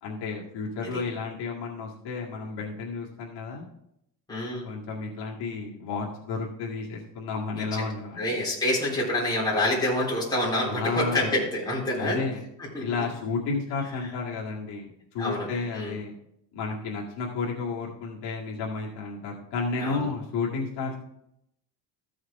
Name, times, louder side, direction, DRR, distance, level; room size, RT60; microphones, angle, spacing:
voice 1, 0.0-3.6 4.6-8.3 10.7-11.4 12.0-12.4 12.8-16.1 16.5-21.0, left 4 dB, 65° left, -3 dB, 2.0 m, -32 dB
voice 2, 4.3-4.7 8.2-12.2 12.7-12.8 15.2-15.5 15.7-16.0 19.8-20.0, left 1 dB, 10° left, -6 dB, 3.7 m, -27 dB
14.0 x 6.4 x 3.6 m, 0.77 s
cardioid pair, 175°, 43 cm